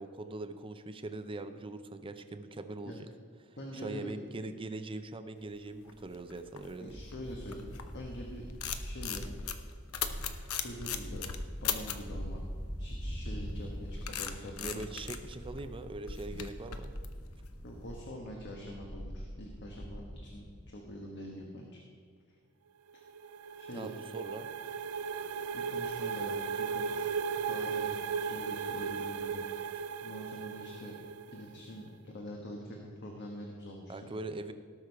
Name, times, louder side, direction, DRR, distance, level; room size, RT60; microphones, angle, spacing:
voice 1, 0.0-3.1 3.7-7.0 14.6-17.0 23.7-24.5 33.9-34.5, right 2 dB, 25° right, 9 dB, 0.6 m, -41 dB
voice 2, 3.6-4.1 6.8-8.4 8.8-9.2 10.6-11.2 11.6-12.4 12.8-14.8 17.6-21.8 22.3-22.4 23.6-23.9 25.5-27.1 27.4-29.4 30.0-30.9 31.3-34.1, equal, 55° left, 0 dB, 1.3 m, -44 dB
sound 1, 5.7-8.0 8.4-12.1 13.4-17.8, left 8 dB, 70° left, 0.8 m, -39 dB
sound 2, 6.9-20.6, equal, 15° left, 1.9 m, -43 dB
sound 3, 22.9-31.6, right 6 dB, 75° right, 0.4 m, -36 dB
18.0 x 6.2 x 4.8 m, 2.1 s
head